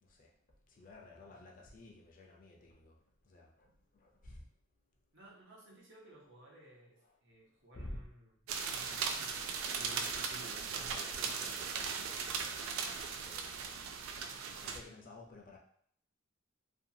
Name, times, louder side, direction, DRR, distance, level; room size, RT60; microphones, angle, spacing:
voice 1, 0.0-4.5 7.1-7.2 7.8-8.0 9.7-12.8 13.2-13.6 14.6-15.6, left 1 dB, 40° left, 0 dB, 0.5 m, -53 dB
voice 2, 5.1-8.3 8.6-9.3, right 1 dB, 60° right, -4 dB, 0.9 m, -58 dB
sound 1, 8.5-14.8, right 6 dB, 80° right, 0.3 m, -38 dB
2.6 x 2.4 x 2.7 m, 0.63 s
head